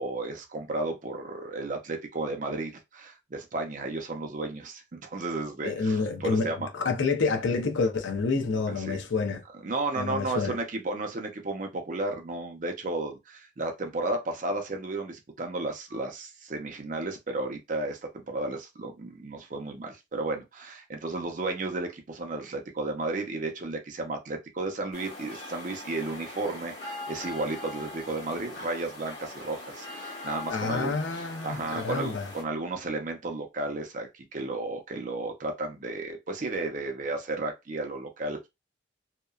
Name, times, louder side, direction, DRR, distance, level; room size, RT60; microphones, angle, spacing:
voice 1, 0.0-6.7 8.8-9.0 9.6-38.5, right 2 dB, 40° right, 0.6 m, -33 dB
voice 2, 5.6-9.4 10.0-10.6 30.5-32.3, left 4 dB, 85° left, 0.6 m, -28 dB
sound 1, 24.9-32.4, left 2 dB, 65° left, 1.3 m, -41 dB
2.8 x 2.1 x 2.3 m
head